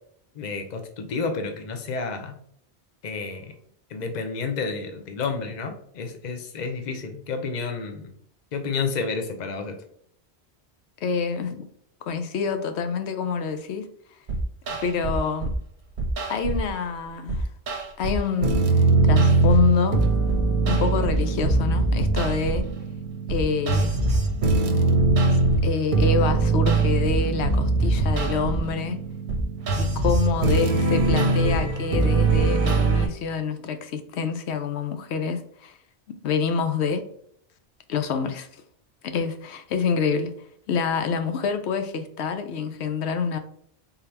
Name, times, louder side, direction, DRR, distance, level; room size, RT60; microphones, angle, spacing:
voice 1, 0.3-2.4 3.0-3.5 3.9-8.1 8.5-9.8, left 4 dB, 45° left, 5 dB, 0.7 m, -30 dB
voice 2, 11.0-11.7 12.0-13.9 14.8-15.5 16.3-17.5 18.0-18.7 19.0-20.1 20.7-22.7 23.3-24.0 25.3-29.0 29.8-35.8 36.2-37.0 37.9-38.5 39.0-40.3 40.7-43.4, left 5 dB, 90° left, 8 dB, 0.9 m, -27 dB
sound 1, 14.3-15.6 16.0-16.7 17.3-33.1, right 3 dB, 55° right, 0.7 m, -22 dB
3.8 x 2.8 x 3.3 m, 0.66 s
omnidirectional pair, 1.1 m